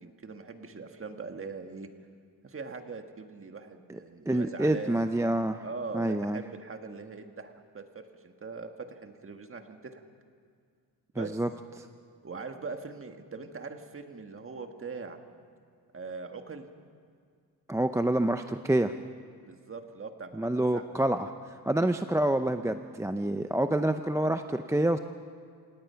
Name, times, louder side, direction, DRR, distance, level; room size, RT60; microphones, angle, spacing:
voice 1, 0.0-1.9 2.4-5.1 5.6-10.0 11.1-11.4 12.2-15.2 15.9-16.7 19.5-20.9, right 4 dB, 30° right, 6 dB, 1.7 m, -41 dB
voice 2, 4.3-5.6 5.9-6.4 11.2-11.5 11.8-11.9 17.7-18.9 20.3-25.0, right 1 dB, 5° right, 8 dB, 0.5 m, -27 dB
27.5 x 18.0 x 5.7 m, 2.2 s
cardioid pair, 110°, 41 cm